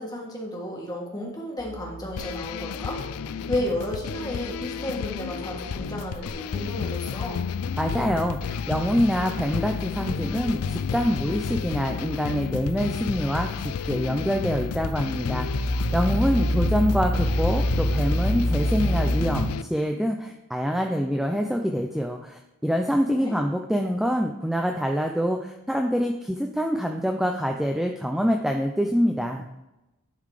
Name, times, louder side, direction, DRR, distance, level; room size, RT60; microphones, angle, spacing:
voice 1, 0.0-3.0 3.5-7.4 23.1-23.4, left 1 dB, 15° left, -1 dB, 1.6 m, -32 dB
sound 1, 1.6-19.5, equal, 55° left, 3.1 m, -31 dB
sound 2, 2.2-19.6, left 7 dB, 85° left, 0.3 m, -31 dB
voice 2, 7.8-15.7 15.9-29.5, equal, ahead, 3 dB, 0.4 m, -25 dB
11.0 x 3.9 x 4.8 m, 0.95 s
head